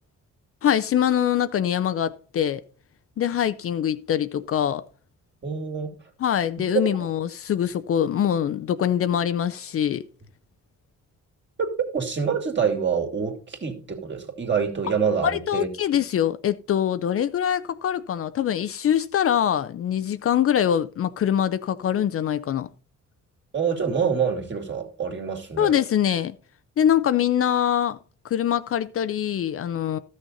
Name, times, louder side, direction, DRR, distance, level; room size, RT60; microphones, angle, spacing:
voice 1, 0.6-2.6 3.2-4.8 6.2-10.0 15.2-22.7 25.6-26.3 26.8-28.0 28.3-30.0, left 9 dB, 50° left, 0.5 m, -23 dB
voice 2, 5.4-5.9 11.9-15.7 23.5-25.7, right 6 dB, 40° right, 2.4 m, -26 dB
13.0 x 6.4 x 4.0 m
cardioid pair, 90°, 30 cm